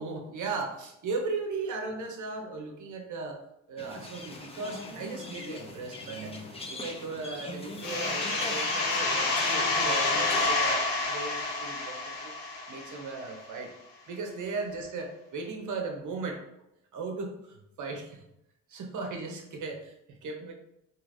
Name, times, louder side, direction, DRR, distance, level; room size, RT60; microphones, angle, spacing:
voice 1, 0.0-3.4 3.7-12.1 12.7-13.7 14.1-16.4 16.9-18.2 18.7-20.5, right 3 dB, 50° right, 2 dB, 0.7 m, -37 dB
sound 1, 3.8-10.5, left 2 dB, 15° left, 0.5 m, -40 dB
sound 2, 7.8-13.3, left 3 dB, 60° left, 0.9 m, -28 dB
3.1 x 2.6 x 2.5 m, 0.82 s
supercardioid pair, 85°, 39 cm